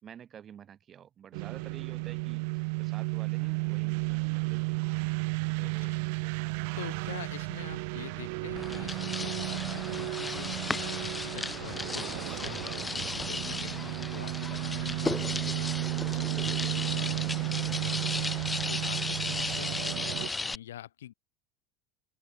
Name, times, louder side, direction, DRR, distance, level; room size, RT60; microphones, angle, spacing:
voice 1, 0.0-4.8 5.6-5.9, right 9 dB, 40° right, 3.8 m, -49 dB
sound 1, 1.3-20.3, right 31 dB, 65° right, 0.5 m, -33 dB
voice 2, 5.6-6.0 6.7-20.1 20.4-21.1, left 12 dB, 80° left, 3.5 m, -46 dB
sound 2, 8.6-20.6, left 3 dB, 15° left, 1.0 m, -35 dB
open air
hypercardioid pair, 80°, 0 cm